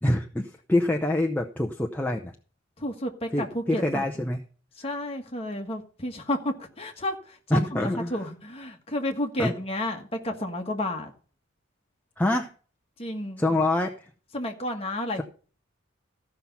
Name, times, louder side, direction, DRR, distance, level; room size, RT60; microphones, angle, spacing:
voice 1, 0.0-2.4 3.3-4.4 7.5-8.2 9.4-9.5 12.2-12.5 13.4-14.1, left 1 dB, 10° left, 0.6 m, -25 dB
voice 2, 2.8-4.1 4.8-11.1 13.0-13.4 14.3-15.2, left 1 dB, 30° left, 1.5 m, -31 dB
14.5 x 5.9 x 5.5 m
head